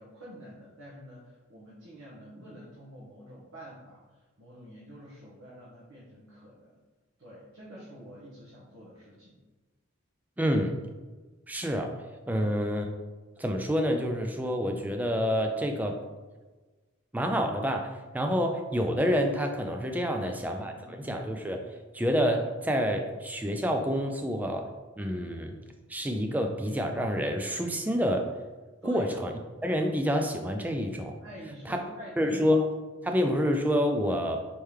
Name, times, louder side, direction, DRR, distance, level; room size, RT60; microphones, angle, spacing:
voice 1, 0.0-6.8 7.2-9.4 10.4-10.5 12.3-12.5 20.0-21.2 28.8-29.1 31.2-32.3 33.0-33.2, equal, 85° right, -7 dB, 1.1 m, -48 dB
voice 2, 10.4-10.7 11.5-11.9 12.3-12.9 13.4-16.0 17.1-21.6 21.9-24.7 25.0-25.6 25.9-28.3 28.8-29.3 29.6-31.2 31.7-31.8 32.2-32.6 33.0-34.4, equal, 10° right, 4 dB, 0.3 m, -28 dB
4.4 x 3.6 x 3.2 m, 1.3 s
head